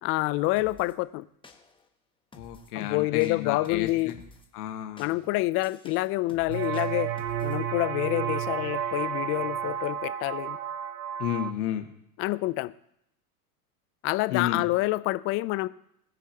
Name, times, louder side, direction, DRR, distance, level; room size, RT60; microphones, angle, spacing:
voice 1, 0.0-1.3 2.8-4.1 5.0-7.1 7.4-10.6 12.2-12.7 14.0-15.7, left 19 dB, 30° left, 15 dB, 0.4 m, -27 dB
sound 1, 0.6-0.9 1.4-1.9 2.3-2.8 3.2-4.5 5.0-7.6, left 3 dB, 10° left, 1.1 m, -53 dB
voice 2, 2.3-4.2 4.5-5.1 11.2-11.9 14.3-14.7, left 11 dB, 75° left, 6 dB, 1.5 m, -32 dB
sound 2, 6.5-11.5, right 9 dB, 85° right, 1.0 m, -31 dB
20.5 x 6.9 x 2.9 m, 0.76 s
hypercardioid pair, 95°, 46 cm